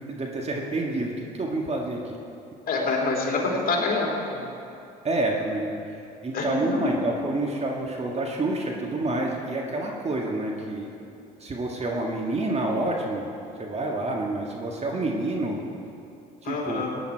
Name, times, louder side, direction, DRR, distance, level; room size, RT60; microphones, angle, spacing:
voice 1, 0.1-2.1 5.0-5.8 6.2-11.0 11.4-13.3 13.6-15.6 16.4-16.8, right 2 dB, 30° right, 0 dB, 1.8 m, -28 dB
voice 2, 2.7-4.5 6.3-7.0 16.4-16.9, left 3 dB, 45° left, -1 dB, 3.2 m, -26 dB
16.5 x 10.0 x 4.6 m, 2.7 s
hypercardioid pair, 65°, 20 cm